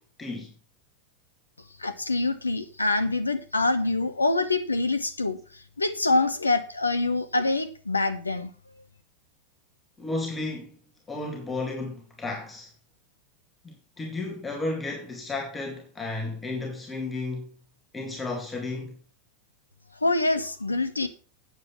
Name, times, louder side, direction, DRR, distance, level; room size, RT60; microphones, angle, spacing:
voice 1, 0.2-0.5 10.0-10.8 11.1-12.7 13.6-17.5 17.9-19.0, left 2 dB, 10° left, 2.4 m, -33 dB
voice 2, 1.8-5.4 5.8-8.5 20.0-21.1, left 2 dB, 80° left, 1.0 m, -25 dB
9.3 x 8.0 x 5.8 m
figure-of-eight pair, 90°, 0 cm